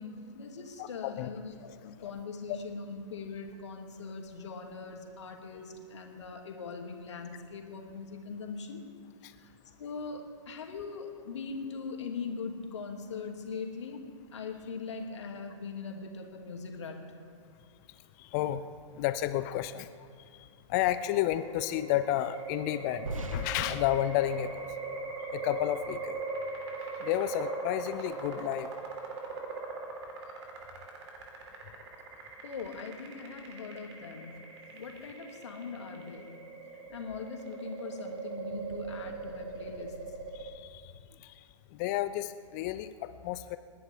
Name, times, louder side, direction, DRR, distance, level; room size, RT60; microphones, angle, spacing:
voice 1, 0.0-8.8 9.4-9.5 9.8-14.0 14.3-17.0 32.4-34.4 34.7-36.4 36.9-40.0, left 4 dB, 60° left, 3 dB, 2.4 m, -41 dB
voice 2, 0.8-1.3 2.0-2.1 2.5-2.6 9.2-9.3 18.2-20.1 20.3-24.7 25.3-26.2 27.0-28.7 40.3-40.9 41.2-41.4 41.7-43.6, left 13 dB, 30° left, 12 dB, 0.6 m, -32 dB
sound 1, 20.7-40.5, right 3 dB, 55° right, 3.0 m, -41 dB
sound 2, 23.1-26.0, right 2 dB, 80° right, 1.2 m, -42 dB
29.0 x 10.5 x 3.5 m, 2.6 s
figure-of-eight pair, 115°, 17 cm